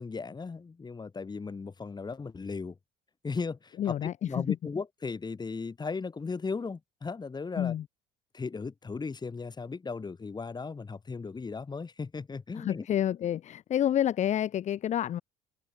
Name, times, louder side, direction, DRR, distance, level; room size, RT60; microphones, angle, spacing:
voice 1, 0.0-2.8 3.2-7.7 8.3-12.9, left 4 dB, 25° left, 1.4 m, -37 dB
voice 2, 3.8-4.6 7.6-7.8 12.5-15.2, left 10 dB, 40° left, 0.5 m, -29 dB
hypercardioid pair, 75°, 18 cm